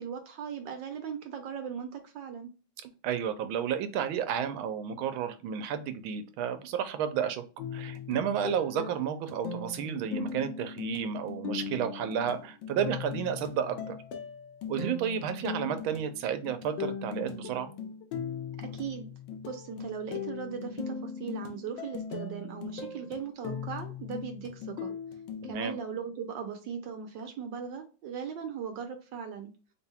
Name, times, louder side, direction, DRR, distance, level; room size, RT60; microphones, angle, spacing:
voice 1, 0.0-2.5 18.6-19.1 19.4-24.9 25.4-29.5, right 7 dB, 70° right, 5 dB, 1.3 m, -38 dB
voice 2, 2.8-7.4 7.7-14.0 14.7-17.7 25.4-25.8, right 8 dB, 85° right, 9 dB, 1.4 m, -32 dB
sound 1, 7.6-25.5, left 6 dB, 70° left, 1.3 m, -39 dB
4.2 x 3.6 x 2.3 m, 0.34 s
omnidirectional pair, 2.2 m